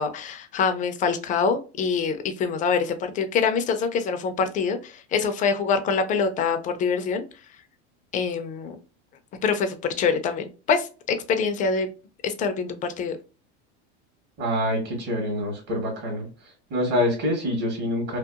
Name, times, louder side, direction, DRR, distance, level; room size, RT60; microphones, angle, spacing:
voice 1, 0.0-7.2 8.1-8.8 9.4-11.9 12.2-13.2, left 5 dB, 25° left, 7 dB, 0.3 m, -25 dB
voice 2, 14.4-16.3 16.7-18.2, left 1 dB, 55° right, -1 dB, 1.3 m, -26 dB
2.8 x 2.3 x 2.3 m, 0.35 s
supercardioid pair, 120°, 35 cm